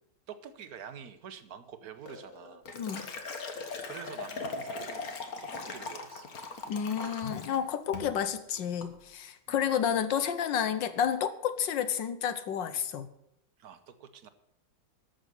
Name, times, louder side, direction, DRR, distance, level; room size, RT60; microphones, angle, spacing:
voice 1, 0.3-2.6 3.8-4.9 5.4-6.3 9.5-9.6 13.6-14.3, right 8 dB, 55° right, 10 dB, 1.1 m, -47 dB
Liquid, 2.1-7.6 7.9-8.2 8.5-8.9, left 3 dB, 45° left, 1.6 m, -40 dB
voice 2, 2.7-3.1 6.7-13.1, left 8 dB, 65° left, 12 dB, 1.3 m, -30 dB
13.0 x 6.5 x 7.9 m, 0.78 s
omnidirectional pair, 2.4 m